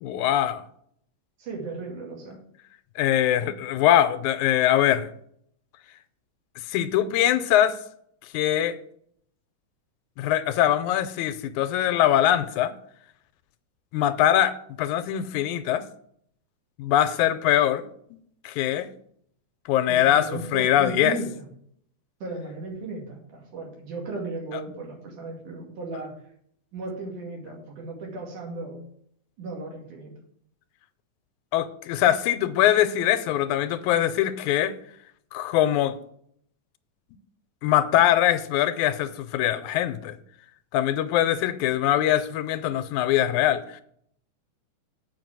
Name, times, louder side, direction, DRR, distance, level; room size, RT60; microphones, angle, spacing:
voice 1, 0.0-0.6 3.0-5.1 6.7-7.8 8.3-8.8 10.2-12.7 13.9-15.8 16.8-17.8 18.4-18.9 19.7-20.3 20.5-21.2 31.5-34.7 35.3-35.9 37.6-40.2 40.7-43.8, left 12 dB, 85° left, 12 dB, 2.0 m, -22 dB
voice 2, 1.4-2.4 19.9-21.3 22.2-26.1 26.7-28.8 29.4-30.1, right 3 dB, 90° right, 0 dB, 3.9 m, -36 dB
7.7 x 5.3 x 7.6 m, 0.67 s
omnidirectional pair, 3.4 m